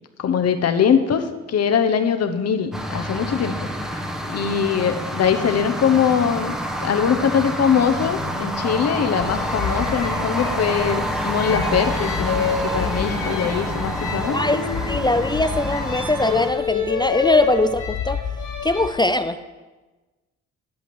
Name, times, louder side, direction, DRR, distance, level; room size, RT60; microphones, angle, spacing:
voice 1, 0.2-3.5 4.2-14.4, left 7 dB, 55° left, 8 dB, 1.0 m, -22 dB
sound 1, 2.7-16.5, equal, ahead, 1.0 m, -28 dB
sound 2, 9.2-18.9, left 6 dB, 80° left, 2.9 m, -28 dB
voice 2, 14.3-18.2 18.6-19.4, left 2 dB, 15° left, 11 dB, 0.4 m, -21 dB
11.5 x 5.8 x 6.2 m, 1.2 s
cardioid pair, 90°, 30 cm